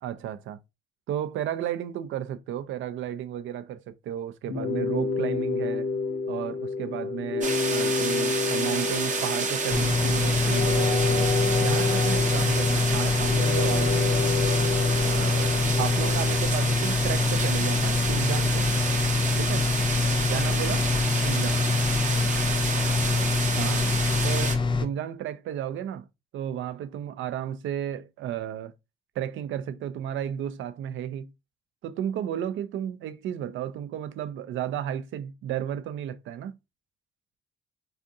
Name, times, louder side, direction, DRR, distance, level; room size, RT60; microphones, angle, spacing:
voice 1, 0.0-0.6 1.1-5.9 6.3-14.1 15.0-18.8 19.4-19.7 20.3-20.9 21.2-21.6 23.6-23.9 24.2-26.1 26.3-28.7 29.2-31.3 31.8-36.5, right 10 dB, 75° right, 0.4 m, -33 dB
sound 1, 4.5-16.5, left 4 dB, 90° left, 0.7 m, -29 dB
sound 2, 7.4-24.6, right 5 dB, 40° right, 0.7 m, -30 dB
sound 3, 9.7-24.9, left 4 dB, 25° left, 0.5 m, -25 dB
3.6 x 2.4 x 2.6 m
cardioid pair, 90°, 20 cm